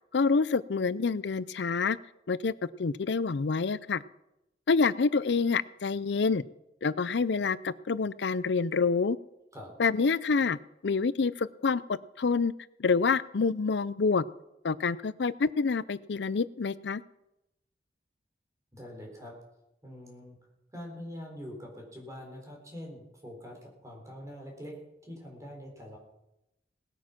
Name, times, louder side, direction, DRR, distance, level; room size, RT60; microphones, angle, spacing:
voice 1, 0.1-2.0 2.3-2.5 2.8-4.0 4.7-6.4 6.8-9.2 9.8-10.6 10.8-12.5 12.8-14.2 14.6-17.0, left 4 dB, 75° left, 18 dB, 0.5 m, -27 dB
voice 2, 18.7-19.3 19.8-20.4 20.7-26.0, equal, 20° right, 0 dB, 4.0 m, -44 dB
19.0 x 9.1 x 5.9 m, 0.90 s
head